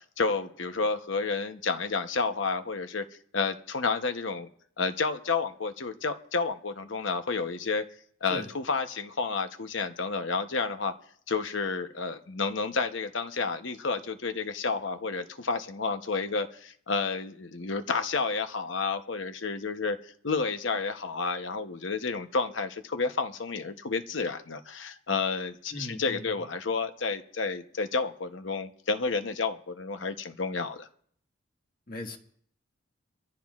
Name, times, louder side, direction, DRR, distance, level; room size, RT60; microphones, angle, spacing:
voice 1, 0.0-3.0 3.3-4.5 4.8-7.8 8.2-10.9 11.3-30.9, left 4 dB, 70° left, 0.9 m, -30 dB
voice 2, 25.7-26.3 31.9-32.2, left 2 dB, 45° left, 1.6 m, -38 dB
25.0 x 14.5 x 2.4 m
head